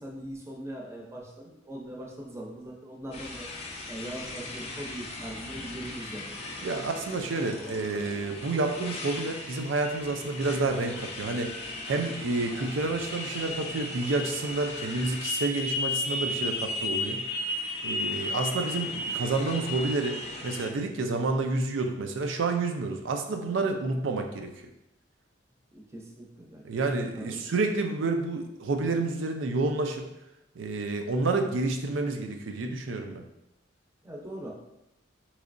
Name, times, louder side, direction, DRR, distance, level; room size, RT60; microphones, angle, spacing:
voice 1, 0.0-3.5 3.9-6.7 25.7-26.6 27.1-27.4 34.0-34.5, right 1 dB, 15° right, -2 dB, 0.6 m, -41 dB
Motorcycle, 3.1-20.7, left 2 dB, 35° left, 0.5 m, -35 dB
voice 2, 6.6-11.5 11.9-17.2 17.8-20.2 20.4-24.5 26.6-30.1 30.6-33.2, right 3 dB, 85° right, 4 dB, 0.5 m, -29 dB
3.7 x 3.1 x 2.5 m, 0.89 s
head